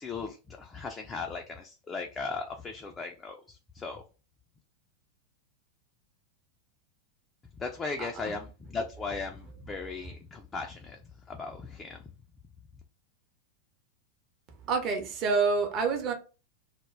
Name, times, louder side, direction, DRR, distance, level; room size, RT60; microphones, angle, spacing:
voice 1, 0.0-4.0 7.6-11.0 11.3-12.0, left 4 dB, 20° left, 0.3 m, -37 dB
voice 2, 8.0-8.3 14.6-16.1, right 4 dB, 35° right, 0.6 m, -28 dB
2.2 x 2.1 x 3.2 m
figure-of-eight pair, 90°, 0 cm